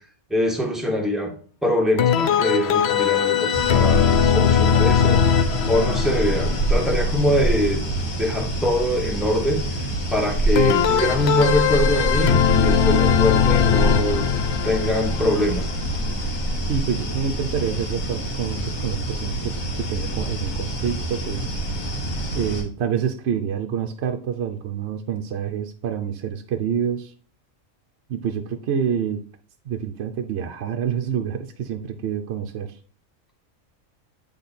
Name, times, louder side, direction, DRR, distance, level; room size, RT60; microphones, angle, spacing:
voice 1, 0.3-1.3 1.6-5.2 5.7-7.8 8.2-9.6 10.1-14.3 14.6-15.7, equal, ahead, 1 dB, 1.1 m, -23 dB
sound 1, 2.0-7.8 10.6-16.5, left 8 dB, 65° left, 0.7 m, -21 dB
sound 2, 3.5-22.6, right 1 dB, 80° left, 1.8 m, -26 dB
voice 2, 16.7-21.6 22.3-27.1 28.1-29.2 29.7-32.8, right 8 dB, 65° right, 5 dB, 0.8 m, -27 dB
8.4 x 3.5 x 4.1 m, 0.42 s
omnidirectional pair, 1.4 m